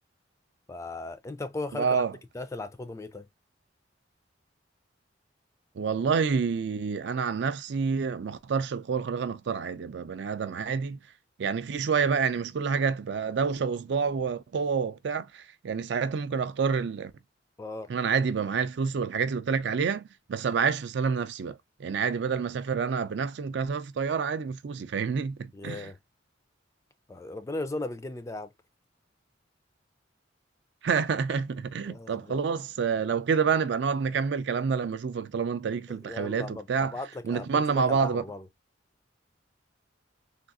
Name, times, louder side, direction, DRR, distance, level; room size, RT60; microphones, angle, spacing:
voice 1, 0.7-2.0 2.3-3.3 17.6-17.9 25.5-26.0 27.1-28.5 31.8-32.4 35.9-38.5, left 2 dB, 15° left, 0.3 m, -37 dB
voice 2, 1.7-2.1 5.8-11.0 11.4-17.1 17.9-25.9 30.8-37.0 37.2-38.2, right 6 dB, 65° right, 0.4 m, -28 dB
3.6 x 2.3 x 2.4 m
head